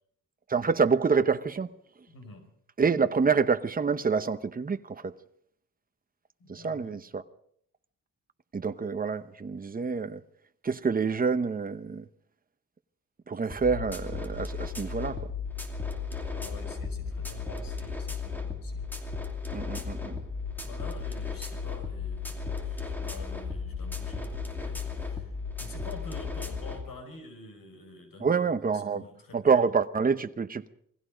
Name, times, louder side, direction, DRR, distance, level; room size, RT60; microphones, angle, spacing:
voice 1, 0.5-1.7 2.8-5.2 6.5-7.2 8.5-10.2 10.6-12.0 13.3-15.3 19.5-20.2 28.2-29.0 29.3-30.7, right 5 dB, 25° right, 0.9 m, -27 dB
voice 2, 2.1-2.5 6.4-6.9 16.2-18.9 20.1-20.3 20.6-28.3 28.7-29.4, left 3 dB, 90° left, 5.6 m, -48 dB
sound 1, 13.5-26.8, left 5 dB, 5° left, 2.7 m, -35 dB
28.0 x 19.5 x 5.1 m
wide cardioid pair, 175°, 33 cm